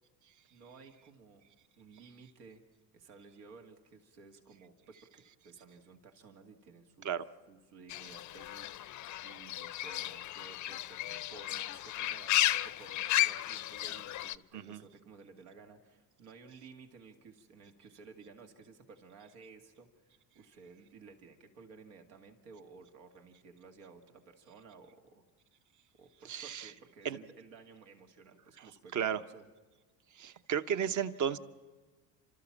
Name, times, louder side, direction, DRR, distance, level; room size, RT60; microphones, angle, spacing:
voice 1, 0.5-1.4 1.8-2.6 2.9-7.2 7.5-25.2 26.0-29.4, right 4 dB, 80° right, 4 dB, 2.3 m, -55 dB
Fowl / Bird, 7.9-14.4, left 14 dB, 40° left, 0.6 m, -34 dB
voice 2, 26.2-26.7 27.0-27.2 28.6-29.2 30.1-31.4, right 8 dB, 35° right, 12 dB, 1.0 m, -34 dB
30.0 x 13.5 x 7.3 m, 1.4 s
supercardioid pair, 90°, 49 cm